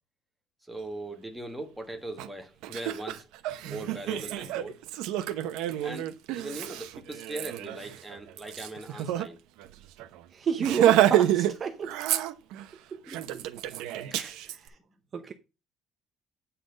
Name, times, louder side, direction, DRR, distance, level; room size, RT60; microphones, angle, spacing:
voice 1, 0.7-3.3 3.6-4.9 5.8-6.1 6.3-9.4 13.1-13.2 14.1-14.4, right 2 dB, 5° right, 1.4 m, -40 dB
Laughter, 2.2-2.3 2.6-9.3 9.6-9.7 10.0-10.2 10.6-11.5 11.8-12.7 13.1-14.6, right 12 dB, 90° right, 0.9 m, -28 dB
voice 2, 10.3-12.0 12.9-13.2 14.5-14.8 15.1-15.3, right 7 dB, 30° right, 0.8 m, -31 dB
9.1 x 4.2 x 5.2 m
cardioid pair, 175°, 0 cm